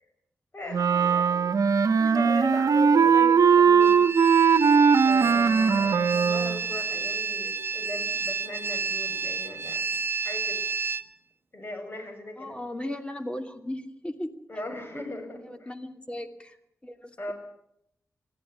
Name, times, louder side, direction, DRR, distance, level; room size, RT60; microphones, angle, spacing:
voice 1, 0.5-1.5 2.0-4.0 5.0-9.8 10.2-10.6 11.5-12.6 14.5-15.7 17.2-17.3, left 2 dB, 40° left, 5 dB, 7.5 m, -38 dB
Wind instrument woodwind instrument, 0.7-6.6, right 6 dB, 85° right, 1.0 m, -20 dB
sound 1, 3.8-11.0, right 5 dB, 40° right, 1.2 m, -31 dB
voice 2, 12.4-14.3 15.4-16.6 16.8-17.3, left 1 dB, 20° left, 6 dB, 2.7 m, -36 dB
21.5 x 14.5 x 9.9 m, 0.77 s
wide cardioid pair, 80°, 6 cm